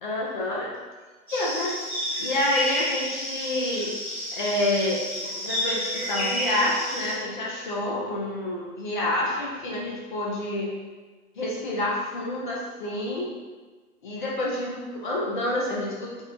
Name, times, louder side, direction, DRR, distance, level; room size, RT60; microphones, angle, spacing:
voice 1, 0.0-0.7 1.3-1.7 2.2-3.9 4.3-5.0 5.4-10.7 11.4-13.3 14.0-16.2, left 1 dB, 35° left, -4 dB, 0.5 m, -28 dB
sound 1, 1.3-7.2, equal, 5° left, 1.1 m, -30 dB
Guitar, 5.3-8.0, equal, 40° right, 0.8 m, -41 dB
3.4 x 2.1 x 2.6 m, 1.3 s
figure-of-eight pair, 125°, 45 cm